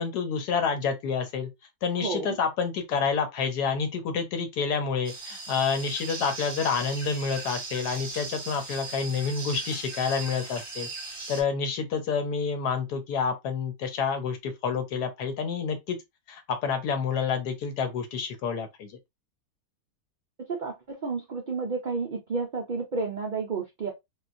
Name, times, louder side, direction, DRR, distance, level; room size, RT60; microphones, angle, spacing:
voice 1, 0.0-1.5 1.8-10.9 11.3-16.0 16.3-19.0, left 5 dB, 80° left, 1.4 m, -28 dB
voice 2, 2.0-2.4 20.5-23.9, right 4 dB, 75° right, 0.4 m, -31 dB
sound 1, 5.0-11.4, right 3 dB, 25° right, 0.9 m, -38 dB
3.7 x 2.4 x 2.4 m
omnidirectional pair, 1.7 m